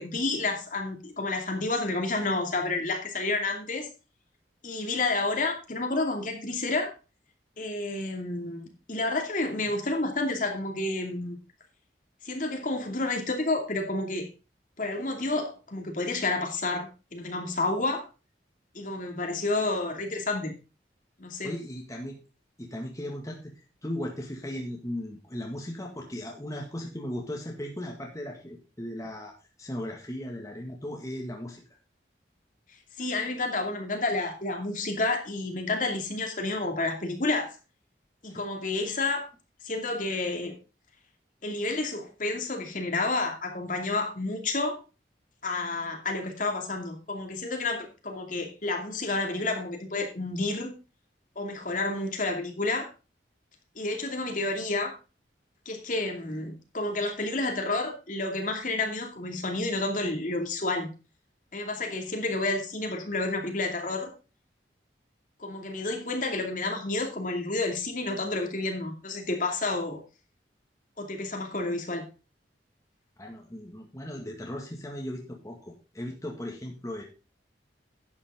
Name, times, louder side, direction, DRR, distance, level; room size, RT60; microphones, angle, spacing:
voice 1, 0.0-3.9 4.6-6.9 7.6-11.4 12.2-14.3 14.8-18.1 18.7-20.5 21.2-21.6 33.0-37.6 38.2-39.3 39.6-40.5 41.4-44.8 45.4-50.8 51.4-52.9 53.8-54.9 55.7-60.9 61.5-64.1 65.4-70.0 71.0-72.1, left 2 dB, 45° left, 3 dB, 2.5 m, -30 dB
voice 2, 21.4-22.1 22.6-23.5 23.8-29.3 29.6-31.6 38.3-38.4 73.2-77.0, left 1 dB, 20° left, 0 dB, 1.9 m, -37 dB
11.5 x 8.8 x 3.7 m, 0.31 s
head